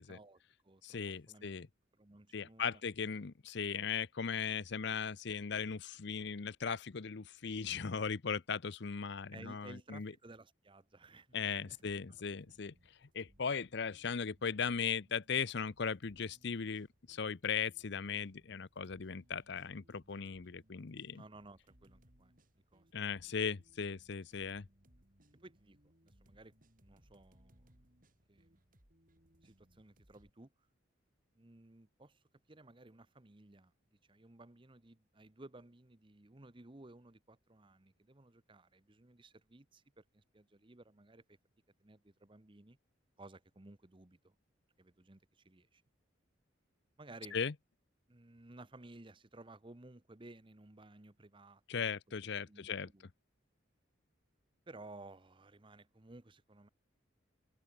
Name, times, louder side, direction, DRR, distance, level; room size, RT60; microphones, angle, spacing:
voice 1, 0.0-1.0 1.3-1.7 2.0-2.8 9.3-11.8 21.1-22.3 22.7-22.9 23.1-23.4 25.3-27.8 28.3-28.7 29.4-30.5 31.3-32.2 32.5-33.7 34.1-41.4 41.8-42.8 43.2-44.3 44.8-45.8 47.0-47.4 48.1-52.2 52.5-53.0 54.7-56.7, right 2 dB, 25° right, 0.9 m, -57 dB
voice 2, 0.8-1.7 2.3-10.1 11.3-12.7 13.1-21.2 22.9-24.7 47.3-47.5 51.7-52.9, left 6 dB, 60° left, 0.7 m, -38 dB
sound 1, 11.3-30.3, equal, 45° right, 6.4 m, -68 dB
open air
head